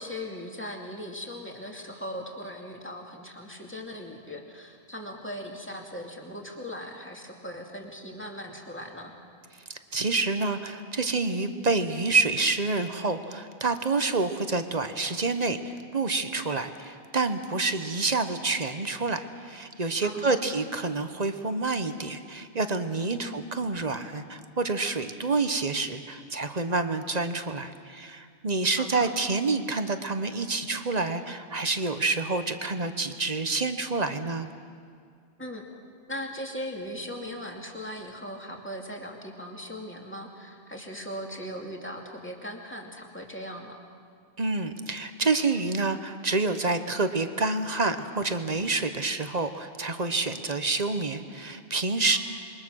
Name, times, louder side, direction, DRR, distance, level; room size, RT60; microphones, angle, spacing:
voice 1, 0.0-9.1 20.0-20.5 23.1-23.5 28.8-29.1 35.4-35.6 36.1-43.8 52.1-52.2, equal, 10° left, 1 dB, 2.5 m, -39 dB
voice 2, 9.9-34.5 44.4-52.2, right 3 dB, 40° right, 9 dB, 1.1 m, -28 dB
27.0 x 23.0 x 6.4 m, 2.3 s
omnidirectional pair, 1.1 m